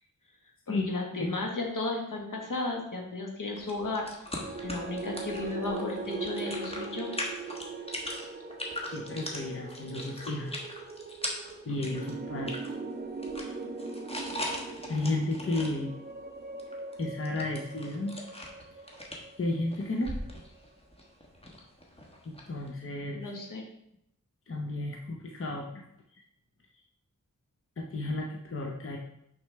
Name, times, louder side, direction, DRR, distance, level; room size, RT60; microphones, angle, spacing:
voice 1, 0.7-4.3 4.6-7.1 23.1-23.6, left 2 dB, 70° left, 0 dB, 1.5 m, -34 dB
sound 1, 3.6-12.7 13.0-15.7 16.6-22.7, left 1 dB, 20° left, 1.3 m, -40 dB
sound 2, 4.3-20.6, right 3 dB, 30° right, 0.6 m, -41 dB
voice 2, 8.9-10.5 11.7-12.6 13.4-13.5 14.9-15.9 17.0-18.2 19.4-20.2 22.3-23.3 24.5-25.8 27.8-29.0, left 2 dB, 40° left, 1 dB, 0.8 m, -33 dB
6.3 x 6.0 x 3.3 m, 0.75 s
wide cardioid pair, 80°, 32 cm